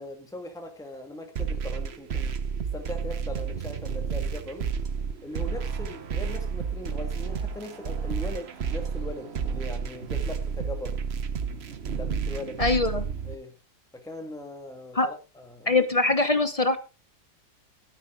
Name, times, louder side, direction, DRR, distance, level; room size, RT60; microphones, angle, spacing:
voice 1, 0.0-2.3 2.7-4.7 5.2-11.0 11.9-13.0 13.2-13.5 13.9-15.8, left 1 dB, ahead, 1.8 m, -40 dB
sound 1, 1.4-13.4, right 6 dB, 45° right, 1.1 m, -31 dB
voice 2, 12.6-13.0 14.9-15.1 15.7-16.8, left 2 dB, 30° left, 0.7 m, -22 dB
12.5 x 9.9 x 3.7 m
omnidirectional pair, 1.7 m